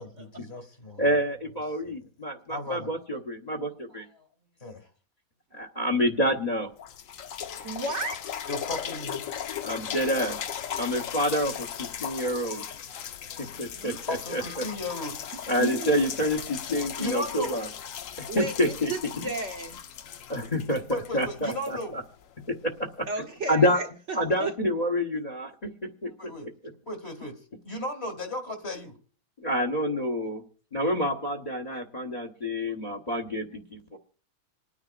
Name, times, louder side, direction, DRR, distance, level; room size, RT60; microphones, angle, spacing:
voice 1, 0.0-1.1 1.7-2.0 2.5-2.9 4.0-4.3 4.6-4.9 7.1-7.8 8.5-9.2 12.6-15.2 17.0-17.5 20.9-22.0 26.2-26.5 26.9-28.9, left 1 dB, 45° left, 2.3 m, -37 dB
voice 2, 1.0-4.0 5.6-6.7 9.6-10.3 10.8-11.7 12.0-12.6 13.4-14.4 15.5-17.7 18.2-18.9 20.3-20.8 21.1-22.0 23.5-23.8 24.1-25.7 26.0-26.1 29.4-30.4 30.7-34.0, equal, 30° left, 1.2 m, -27 dB
sound 1, 6.3-6.4 6.8-22.5 23.2-23.3, left 9 dB, 70° left, 1.1 m, -37 dB
voice 3, 7.6-8.2 13.5-14.0 14.6-14.7 15.6-16.0 18.3-19.8 23.0-24.5, right 2 dB, 55° right, 1.3 m, -34 dB
27.0 x 9.8 x 2.5 m
omnidirectional pair, 1.5 m